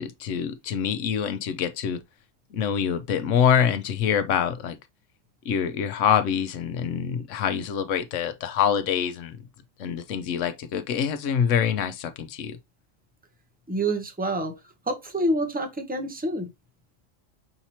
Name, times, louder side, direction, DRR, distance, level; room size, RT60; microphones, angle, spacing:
voice 1, 0.0-2.0 2.5-4.8 5.4-9.4 9.8-12.6, left 8 dB, 75° left, 1.0 m, -25 dB
voice 2, 13.7-14.6 14.9-16.5, right 1 dB, 10° right, 0.6 m, -27 dB
5.7 x 2.9 x 2.8 m
omnidirectional pair, 1.3 m